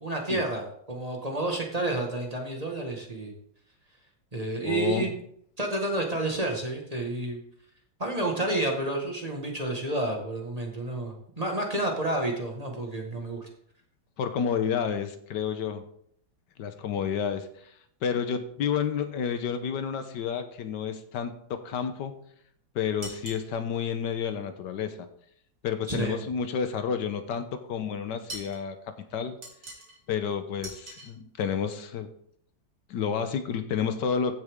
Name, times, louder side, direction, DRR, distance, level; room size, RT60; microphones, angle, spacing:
voice 1, 0.0-3.3 4.3-5.1 5.6-7.4 8.0-13.5 25.9-26.2, right 2 dB, 20° right, 1 dB, 1.5 m, -30 dB
voice 2, 4.6-5.1 14.2-15.8 16.6-17.7 18.0-22.1 22.7-25.1 25.6-28.8 29.1-29.4 30.1-32.1 32.9-34.4, left 7 dB, 75° left, 9 dB, 1.5 m, -30 dB
sound 1, 23.0-23.5 28.3-28.6 29.4-30.0 30.6-31.1, right 2 dB, 75° right, 3.4 m, -41 dB
15.0 x 6.8 x 3.6 m, 0.67 s
omnidirectional pair, 1.9 m